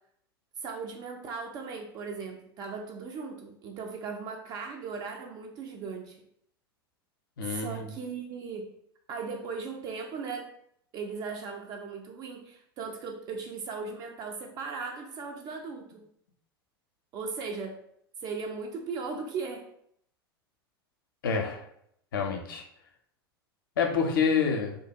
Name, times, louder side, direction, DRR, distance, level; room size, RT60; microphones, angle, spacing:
voice 1, 0.6-6.2 7.4-8.7 9.1-10.5 10.9-16.0 17.1-17.8 18.2-19.7, right 5 dB, 30° right, 3 dB, 0.4 m, -37 dB
voice 2, 7.4-7.9 21.2-21.6 22.1-22.6 23.8-24.8, left 5 dB, 60° left, 3 dB, 0.5 m, -27 dB
2.5 x 2.1 x 2.6 m, 0.71 s
figure-of-eight pair, 85°, 13 cm